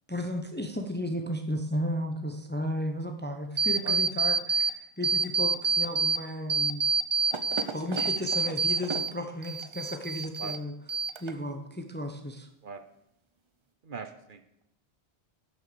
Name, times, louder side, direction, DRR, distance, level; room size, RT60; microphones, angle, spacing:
voice 1, 0.1-6.8 7.7-10.7 11.2-12.5, equal, 10° left, 5 dB, 0.8 m, -34 dB
sound 1, 3.6-4.7 5.0-6.2 6.5-9.1 9.4-10.6 10.9-11.5, right 4 dB, 35° right, 0.6 m, -27 dB
voice 2, 13.8-14.6, right 4 dB, 55° right, 9 dB, 0.9 m, -41 dB
11.5 x 6.7 x 6.9 m, 0.80 s
omnidirectional pair, 1.1 m